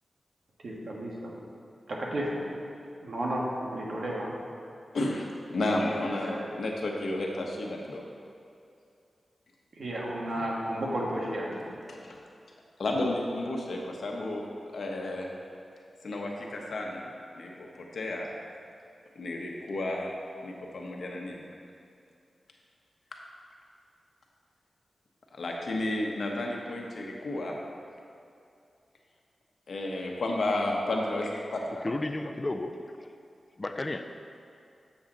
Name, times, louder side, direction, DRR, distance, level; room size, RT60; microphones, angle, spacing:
voice 1, 0.6-1.4 1.9-2.5 3.0-4.3 5.8-6.5 9.7-11.7, right 1 dB, 70° right, -3 dB, 1.5 m, -33 dB
voice 2, 4.9-8.0 11.7-12.2 12.8-15.3 16.0-18.3 19.1-20.1 20.4-21.4 25.3-27.5 29.7-31.8, left 1 dB, 70° left, 0 dB, 1.1 m, -32 dB
voice 3, 31.8-33.1 33.6-34.1, left 2 dB, 30° left, 7 dB, 0.3 m, -33 dB
7.3 x 7.1 x 3.9 m, 2.5 s
wide cardioid pair, 85°, 0 cm